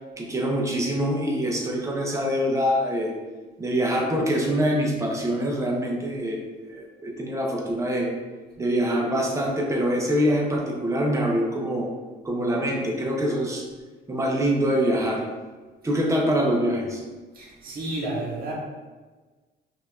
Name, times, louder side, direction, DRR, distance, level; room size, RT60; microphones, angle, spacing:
voice 1, 0.2-3.1 3.6-8.1 8.6-11.9 12.2-13.6 14.1-15.3 15.8-17.0, equal, 15° right, -1 dB, 0.8 m, -24 dB
voice 2, 17.3-18.5, right 2 dB, 45° right, -4 dB, 1.3 m, -31 dB
5.7 x 2.8 x 2.4 m, 1.3 s
cardioid pair, 90°, 20 cm